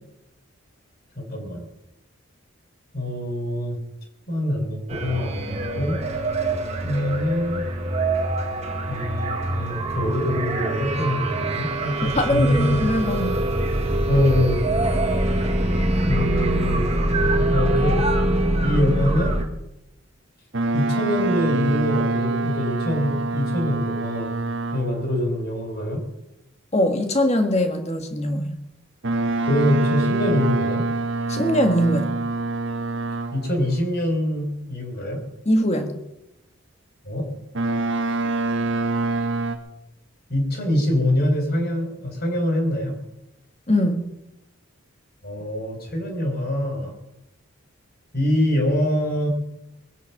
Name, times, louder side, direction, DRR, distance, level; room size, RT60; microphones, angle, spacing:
voice 1, 1.2-1.7 2.9-3.8 4.3-6.0 6.8-7.7 8.9-12.8 14.1-14.6 16.1-16.9 17.2-18.0 18.6-19.4 20.7-24.3 24.7-26.0 29.5-30.9 33.3-35.2 37.0-37.3 40.3-43.0 45.2-46.9 48.1-49.3, left 1 dB, 45° left, 2 dB, 4.2 m, -24 dB
sound 1, 4.9-19.4, right 1 dB, 30° right, 1.7 m, -24 dB
voice 2, 12.1-13.4 26.7-28.5 31.3-32.1 35.4-36.0 43.7-44.1, equal, 30° left, 6 dB, 1.6 m, -21 dB
Boat Water vehicle, 20.5-25.1 29.0-33.6 37.5-39.6, right 2 dB, 55° right, 1.5 m, -25 dB
21.5 x 9.2 x 5.9 m, 0.92 s
head